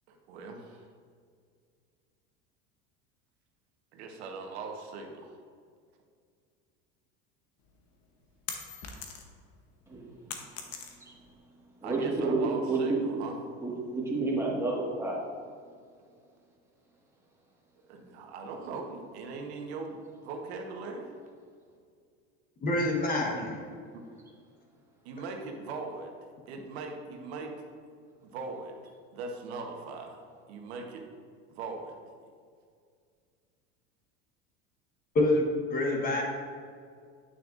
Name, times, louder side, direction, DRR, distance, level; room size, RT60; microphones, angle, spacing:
voice 1, 0.1-0.8 3.9-5.3 11.8-13.4 17.9-20.0 20.2-21.1 23.9-24.0 25.0-26.1 26.5-27.5 28.2-28.7 29.1-30.2 30.5-31.0 31.5-31.9, right 4 dB, 85° right, 2 dB, 1.2 m, -40 dB
sound 1, 7.7-9.5 9.8-11.3, left 6 dB, 50° left, 1.0 m, -41 dB
voice 2, 11.8-12.4 12.7-13.0 13.6-15.2 23.4-23.5, right 3 dB, 10° right, -5 dB, 1.8 m, -30 dB
voice 3, 22.6-23.6 35.1-36.2, left 1 dB, 25° left, 0 dB, 1.2 m, -27 dB
9.3 x 6.1 x 2.6 m, 2.1 s
supercardioid pair, 130°, 32 cm